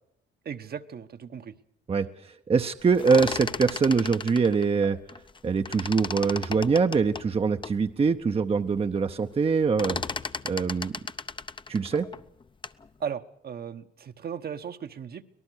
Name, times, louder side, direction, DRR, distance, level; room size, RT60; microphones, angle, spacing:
voice 1, 0.4-1.5 13.0-15.2, right 7 dB, 50° right, 9 dB, 1.1 m, -36 dB
voice 2, 1.9-5.0 5.4-10.0 10.4-10.9 11.7-12.1, right 5 dB, 30° right, 8 dB, 0.8 m, -24 dB
sound 1, 2.8-5.4 5.6-7.8 8.3-8.4 8.6-9.1 9.3-12.9, left 4 dB, 25° left, 0.7 m, -35 dB
24.5 x 18.5 x 6.4 m, 0.77 s
cardioid pair, 90°, 20 cm